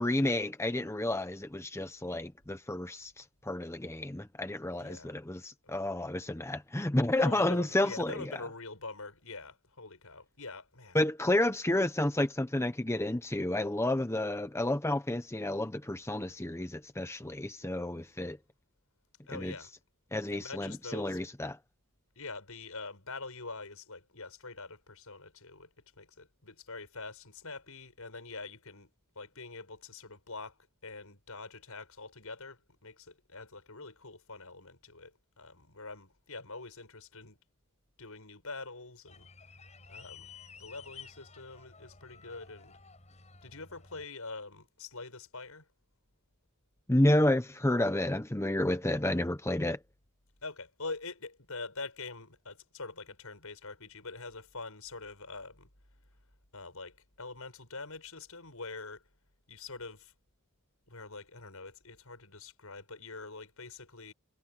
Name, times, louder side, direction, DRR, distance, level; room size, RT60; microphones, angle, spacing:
voice 1, 0.0-8.3 10.9-18.4 19.3-19.5 20.1-21.6 46.9-49.8, left 1 dB, 10° left, 0.9 m, -30 dB
voice 2, 4.8-5.2 5.6-5.9 7.2-11.0 19.3-19.7 20.3-21.2 22.2-37.4 38.0-39.3 39.9-42.8 43.4-45.7 50.4-55.7 56.5-59.0 59.5-60.1 60.9-64.1, left 3 dB, 80° left, 7.2 m, -45 dB
sound 1, 39.1-44.0, left 5 dB, 30° left, 7.9 m, -53 dB
head